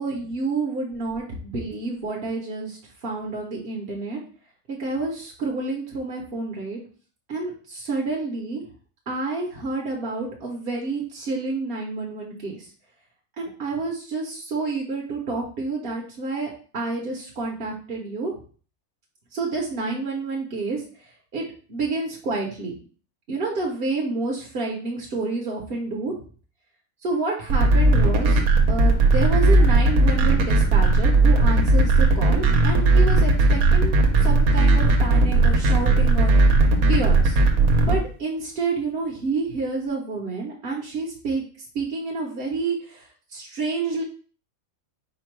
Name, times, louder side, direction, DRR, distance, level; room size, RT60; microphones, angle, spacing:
voice 1, 0.0-4.2 4.7-6.8 7.3-8.6 9.1-12.7 13.4-18.4 19.3-22.7 23.3-26.2 27.0-36.3 36.9-37.4 37.9-41.4 41.7-44.0, right 3 dB, 45° right, -2 dB, 0.9 m, -29 dB
sound 1, 27.5-38.0, right 2 dB, 75° right, 1.2 m, -17 dB
5.0 x 2.2 x 4.5 m, 0.41 s
omnidirectional pair, 1.5 m